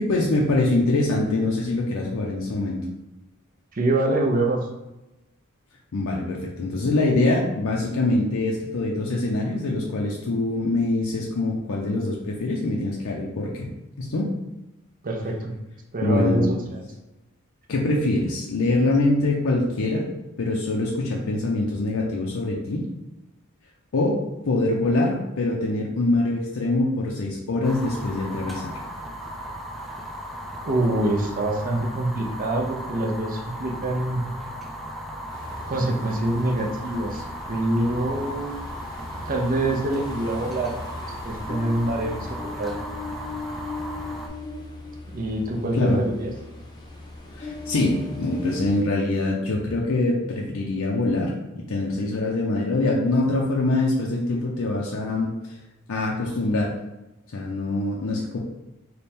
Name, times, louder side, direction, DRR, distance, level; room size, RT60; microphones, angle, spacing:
voice 1, 0.0-2.8 5.9-13.7 14.0-14.3 16.0-16.4 17.7-20.1 20.4-22.8 23.9-24.2 24.4-28.7 45.7-46.0 47.4-51.3 51.7-55.3 55.9-56.7 57.3-58.4, left 2 dB, 70° left, -2 dB, 0.5 m, -24 dB
voice 2, 3.8-4.6 15.0-15.5 15.9-16.5 30.6-34.2 35.7-37.2 37.5-38.6 39.3-40.7 41.0-42.8 45.1-46.3, right 1 dB, 40° right, 1 dB, 0.6 m, -25 dB
Fire, 27.6-44.3, equal, ahead, 0.3 m, -36 dB
Ocean, 35.3-48.8, left 2 dB, 20° left, 0.7 m, -39 dB
3.4 x 2.2 x 4.2 m, 0.99 s
head